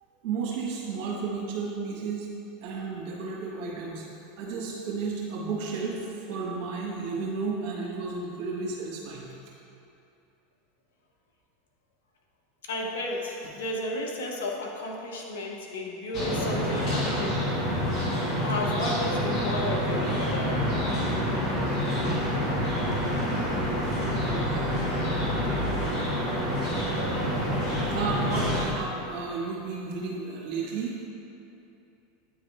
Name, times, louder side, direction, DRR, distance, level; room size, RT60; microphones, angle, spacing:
voice 1, 0.2-2.3 2.6-4.1 4.4-9.3 22.8-23.0 23.4-24.5 27.8-31.0, right 4 dB, 50° right, -4 dB, 1.5 m, -33 dB
voice 2, 12.6-17.7 18.4-20.6, left 2 dB, 70° left, 0 dB, 0.8 m, -33 dB
sound 1, 16.1-28.7, equal, 40° left, 1.4 m, -27 dB
9.2 x 3.2 x 3.4 m, 2.7 s
figure-of-eight pair, 85°, 0 cm